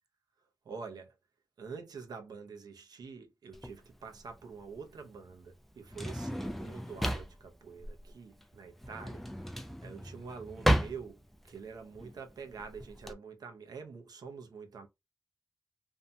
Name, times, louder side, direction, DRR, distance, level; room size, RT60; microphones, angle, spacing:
voice 1, 0.6-1.1 1.6-14.9, right 5 dB, 90° right, 0.6 m, -46 dB
Drawer open or close, 3.5-13.1, equal, 5° left, 0.3 m, -35 dB
2.7 x 2.2 x 2.6 m
wide cardioid pair, 170°, 7 cm